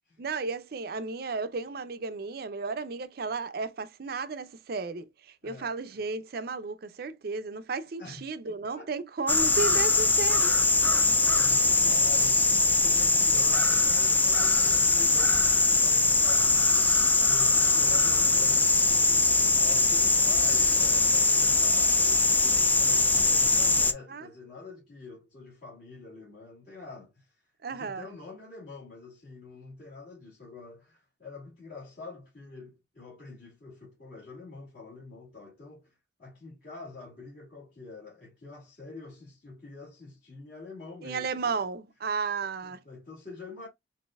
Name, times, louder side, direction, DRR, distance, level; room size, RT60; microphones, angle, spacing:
voice 1, 0.2-10.5 24.1-24.3 27.6-28.1 41.0-42.8, right 4 dB, 55° right, 0.5 m, -34 dB
voice 2, 5.4-5.7 8.0-8.3 8.8-8.9 10.9-27.4 27.7-41.6 42.6-43.7, left 3 dB, 55° left, 2.4 m, -46 dB
sound 1, 9.3-23.9, left 3 dB, 10° left, 0.4 m, -22 dB
6.2 x 2.6 x 2.3 m
head